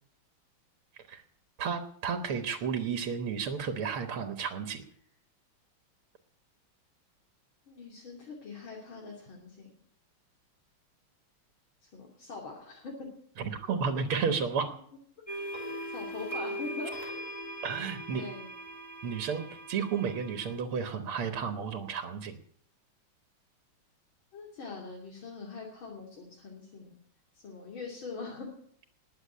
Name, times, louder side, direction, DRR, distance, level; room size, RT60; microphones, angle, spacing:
voice 1, 1.6-4.8 13.4-14.7 17.6-18.2 19.0-22.4, right 6 dB, 80° right, 7 dB, 2.2 m, -32 dB
voice 2, 7.7-9.7 11.8-13.1 15.9-17.1 18.1-18.5 24.3-26.9 27.4-28.5, left 4 dB, 65° left, -2 dB, 3.6 m, -42 dB
sound 1, 15.3-20.5, right 1 dB, 15° left, 4.2 m, -40 dB
20.5 x 7.5 x 8.6 m, 0.64 s
omnidirectional pair, 2.4 m